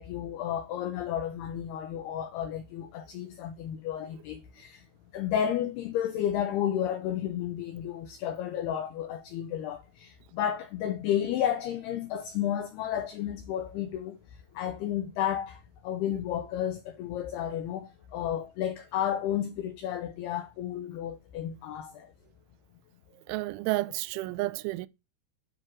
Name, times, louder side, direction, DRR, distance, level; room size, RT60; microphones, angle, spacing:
voice 1, 0.0-4.8 5.1-14.2 14.5-22.1, left 10 dB, 90° left, 2.2 m, -32 dB
voice 2, 23.3-24.9, right 20 dB, 85° right, 2.9 m, -31 dB
10.5 x 3.8 x 6.1 m
omnidirectional pair, 5.6 m